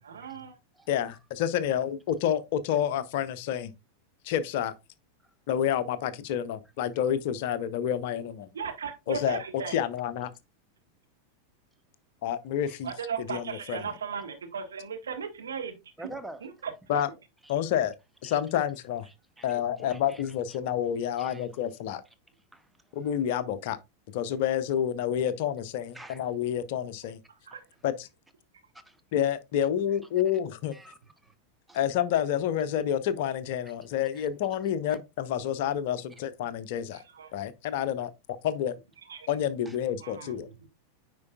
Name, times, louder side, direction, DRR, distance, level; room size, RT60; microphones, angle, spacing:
voice 1, 0.0-0.5 8.5-9.8 12.8-15.8 16.4-16.7 27.5-27.6 36.9-37.3 39.1-39.3 40.0-40.3, right 6 dB, 70° right, 1.4 m, -36 dB
voice 2, 0.9-3.7 4.2-4.7 5.5-8.5 9.1-10.3 12.2-12.9 13.2-13.9 16.9-17.1 17.5-17.9 18.2-19.0 19.4-22.0 22.9-23.8 24.1-27.2 27.8-28.1 29.1-30.7 31.7-37.0 37.3-38.7 39.3-40.5, left 10 dB, 50° left, 0.6 m, -29 dB
voice 3, 16.0-16.5 17.4-17.5 18.2-18.4 19.1-20.6 21.2-21.5 22.5-23.0 25.9-26.2 28.8-29.0 30.7-31.3 31.7-31.8 34.1-34.3 39.7-39.8, right 2 dB, 5° right, 0.7 m, -47 dB
9.5 x 4.6 x 2.3 m
figure-of-eight pair, 90°, 0 cm